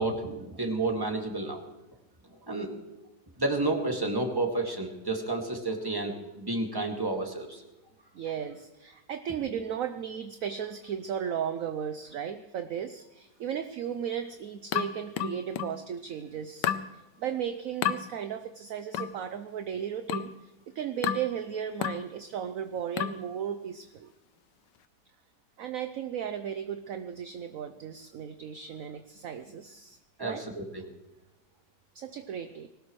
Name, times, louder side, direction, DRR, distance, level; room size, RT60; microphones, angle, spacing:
voice 1, 0.0-1.6 2.5-2.7 3.4-7.6 30.2-30.8, right 2 dB, 15° right, 2 dB, 2.0 m, -30 dB
voice 2, 8.1-24.1 25.6-30.5 31.9-32.7, right 8 dB, 60° right, 9 dB, 1.0 m, -35 dB
sound 1, 14.7-15.8 16.6-16.9 17.8-18.0 18.9-19.2 20.1-20.4 21.0-21.3 21.8-22.1 23.0-23.3, left 10 dB, 80° left, 1.4 m, -31 dB
20.5 x 18.5 x 3.2 m, 1.0 s
omnidirectional pair, 1.9 m